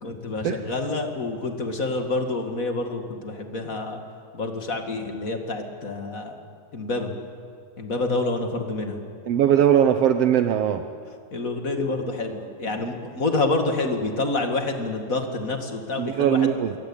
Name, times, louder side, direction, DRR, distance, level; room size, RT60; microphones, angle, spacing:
voice 1, 0.0-4.0 4.3-6.4 6.7-7.1 7.8-9.0 11.3-16.5, left 2 dB, 30° left, 4 dB, 1.9 m, -27 dB
voice 2, 9.3-10.8 16.0-16.7, right 9 dB, 75° right, 7 dB, 1.4 m, -20 dB
28.0 x 22.5 x 8.9 m, 2.3 s
omnidirectional pair, 4.0 m